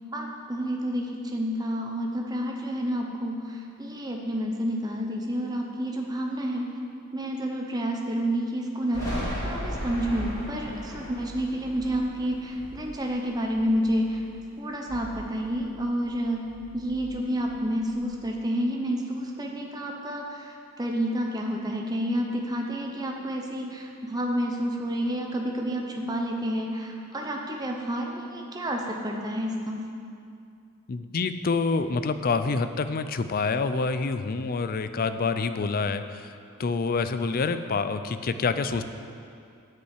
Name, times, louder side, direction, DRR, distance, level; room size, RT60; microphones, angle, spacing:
voice 1, 0.1-6.7 7.1-9.2 9.4-14.2 14.6-29.8, equal, 15° right, 1 dB, 0.8 m, -29 dB
Thunder, 8.9-14.4 14.7-16.2 16.4-18.2, equal, 15° left, 2.8 m, -37 dB
voice 2, 30.9-36.3 36.6-38.8, left 4 dB, 40° left, 10 dB, 0.4 m, -27 dB
9.5 x 5.5 x 8.3 m, 2.5 s
head